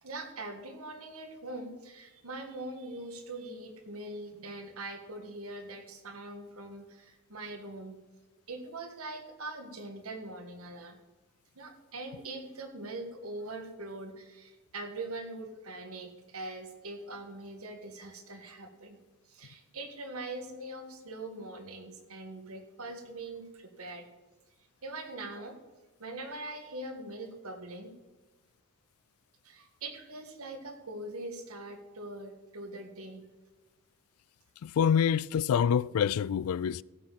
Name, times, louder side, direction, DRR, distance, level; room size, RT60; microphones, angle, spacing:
voice 1, 0.0-8.0 8.5-11.0 11.6-19.0 19.3-24.1 24.8-25.6 26.0-27.9 29.4-33.2, right 2 dB, 80° right, 1.8 m, -42 dB
voice 2, 34.6-36.8, left 8 dB, 85° left, 0.3 m, -26 dB
16.0 x 8.9 x 4.2 m
head